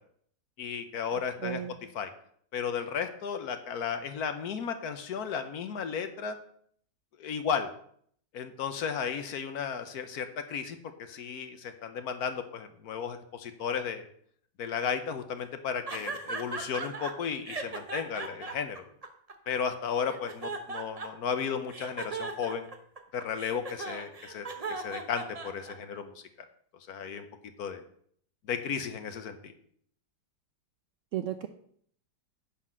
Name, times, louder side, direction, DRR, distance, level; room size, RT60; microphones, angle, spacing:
voice 1, 0.6-1.6 1.9-2.1 2.5-6.4 7.2-7.7 8.3-14.1 14.6-18.8 19.5-22.7 23.1-26.2 26.9-27.2 27.6-27.8 28.4-29.5, left 7 dB, 65° left, 8 dB, 1.3 m, -34 dB
voice 2, 1.4-1.8 31.1-31.5, right 11 dB, 75° right, 9 dB, 0.7 m, -33 dB
sound 1, 15.9-17.1 17.5-19.6 20.0-21.3 21.7-26.0, right 4 dB, 30° right, 0.8 m, -37 dB
10.0 x 4.1 x 7.4 m, 0.62 s
omnidirectional pair, 1.8 m